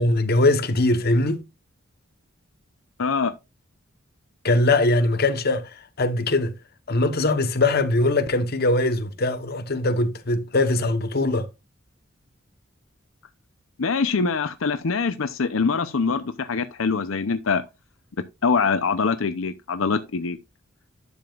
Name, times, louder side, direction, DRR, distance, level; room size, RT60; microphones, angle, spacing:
voice 1, 0.0-1.4 4.4-6.5 6.9-11.5, left 2 dB, 50° left, 1.1 m, -21 dB
voice 2, 3.0-3.3 13.8-17.6 18.4-20.4, left 5 dB, 80° left, 0.7 m, -24 dB
11.0 x 6.9 x 2.4 m
head